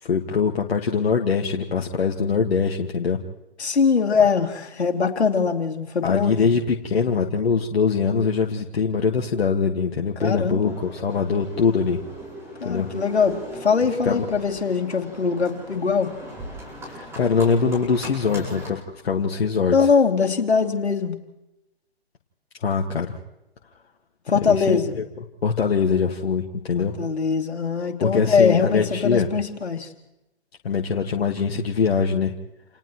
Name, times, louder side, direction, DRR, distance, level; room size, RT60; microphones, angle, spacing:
voice 1, 0.0-3.2 4.2-4.3 6.0-12.0 12.6-12.9 14.1-14.2 16.9-19.9 22.6-23.1 24.5-25.0 25.4-26.9 28.0-29.3 30.6-32.3, left 5 dB, 65° left, 1 dB, 1.8 m, -23 dB
voice 2, 3.6-6.5 10.2-10.7 12.6-16.1 19.7-21.2 24.3-25.0 26.7-29.9, left 5 dB, 85° left, 2 dB, 2.8 m, -22 dB
Livestock farm animals working animals, 10.6-18.7, equal, 10° right, 7.5 m, -39 dB
29.5 x 28.5 x 3.1 m, 0.91 s
hypercardioid pair, 145°, 32 cm